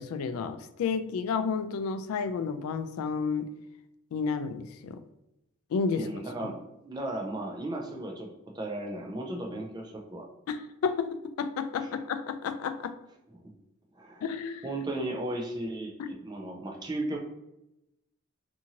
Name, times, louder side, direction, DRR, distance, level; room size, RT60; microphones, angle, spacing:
voice 1, 0.0-3.5 4.1-5.0 5.7-6.1 10.5-12.9 14.2-14.6 16.0-16.1, left 5 dB, 85° left, 12 dB, 0.3 m, -31 dB
voice 2, 5.9-8.3 8.5-10.3 11.8-11.9 13.3-13.5 13.9-14.3 14.6-17.2, right 1 dB, 20° right, 0 dB, 0.4 m, -35 dB
2.6 x 2.6 x 2.8 m, 0.88 s
head